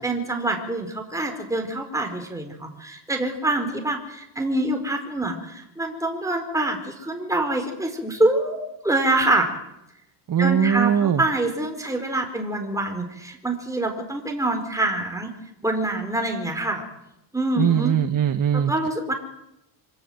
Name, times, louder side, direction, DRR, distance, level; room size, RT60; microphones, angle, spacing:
voice 1, 0.0-9.5 10.4-15.3 15.6-16.8 17.3-17.9 18.7-19.1, right 2 dB, 5° right, 4 dB, 4.5 m, -25 dB
voice 2, 10.3-11.2 17.6-18.7, right 9 dB, 45° right, 8 dB, 1.4 m, -20 dB
26.0 x 17.0 x 8.0 m, 0.83 s
cardioid pair, 100°, 47 cm